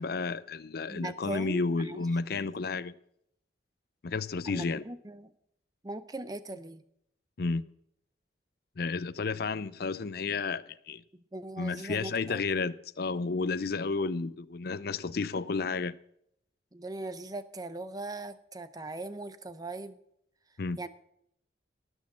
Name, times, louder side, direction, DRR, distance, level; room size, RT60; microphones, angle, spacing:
voice 1, 0.0-2.9 4.0-4.8 7.4-7.6 8.8-11.0 11.6-15.9 20.6-20.8, left 4 dB, 55° left, 0.5 m, -32 dB
voice 2, 0.9-2.0 4.5-5.3 5.8-6.8 11.3-12.4 16.7-20.0 20.8-20.9, right 2 dB, 20° right, 0.7 m, -40 dB
18.0 x 6.4 x 7.3 m
head